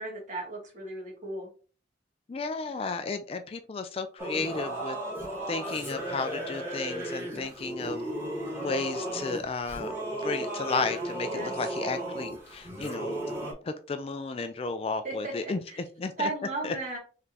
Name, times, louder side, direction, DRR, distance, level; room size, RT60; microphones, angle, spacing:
voice 1, 0.0-1.5 7.3-7.5 11.3-11.5 15.0-15.8 16.2-17.0, right 2 dB, 40° right, -1 dB, 1.7 m, -35 dB
voice 2, 2.3-5.0 5.5-8.0 8.6-13.2 13.6-15.6 16.0-16.3 16.6-16.7, left 4 dB, 30° left, 9 dB, 0.3 m, -33 dB
Singing / Musical instrument, 4.2-13.5, right 1 dB, 15° right, 1.7 m, -35 dB
3.7 x 3.7 x 2.8 m, 0.38 s
head